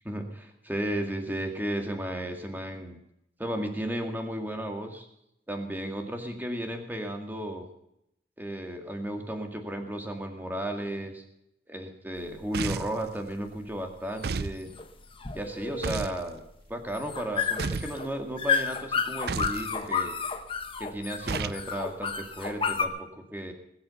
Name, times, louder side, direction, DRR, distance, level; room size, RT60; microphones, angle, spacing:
voice 1, 0.7-3.0 3.4-5.1 5.5-7.7 8.4-11.2 11.7-14.7 15.3-16.4 16.7-20.1 20.8-23.5, right 1 dB, 10° right, 4 dB, 2.1 m, -34 dB
sound 1, 12.2-22.9, left 6 dB, 30° left, 1.1 m, -32 dB
sound 2, 12.5-13.0 14.2-14.6 15.8-16.2 17.6-18.0 19.3-19.6 21.3-21.6, right 4 dB, 60° right, 0.5 m, -32 dB
20.5 x 8.1 x 7.0 m, 0.79 s
head